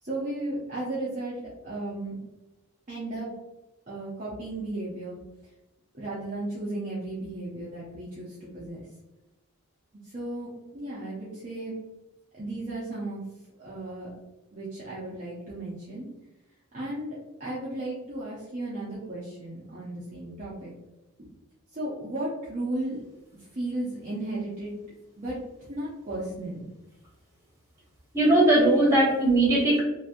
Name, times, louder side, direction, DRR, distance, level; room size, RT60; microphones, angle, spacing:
voice 1, 0.0-2.2 2.9-3.3 3.9-5.2 5.9-8.8 10.0-11.7 12.4-13.2 13.6-14.1 14.5-16.1 16.7-17.1 17.4-20.7 21.7-23.0 23.5-24.8 25.2-25.4 25.7-26.6, right 1 dB, 35° right, -8 dB, 0.7 m, -34 dB
voice 2, 28.1-29.8, right 1 dB, 15° right, -8 dB, 1.3 m, -19 dB
2.9 x 2.6 x 2.4 m, 1.0 s
head